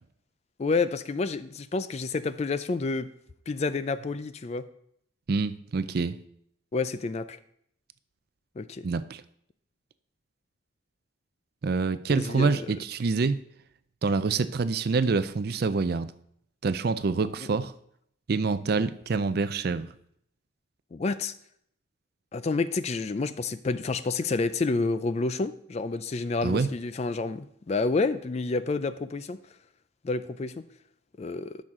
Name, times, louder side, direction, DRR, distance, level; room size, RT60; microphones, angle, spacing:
voice 1, 0.6-3.1 3.5-4.7 6.7-7.4 8.6-8.8 12.1-12.7 17.2-17.3 20.9-21.3 22.3-29.4 30.0-30.5 31.2-31.6, left 3 dB, 30° left, 13 dB, 0.3 m, -29 dB
voice 2, 5.3-6.2 8.8-9.2 11.6-13.4 14.0-16.1 16.6-17.7 18.3-19.9 26.4-26.7, right 4 dB, 50° right, 13 dB, 0.4 m, -26 dB
12.0 x 6.3 x 3.7 m, 0.70 s
head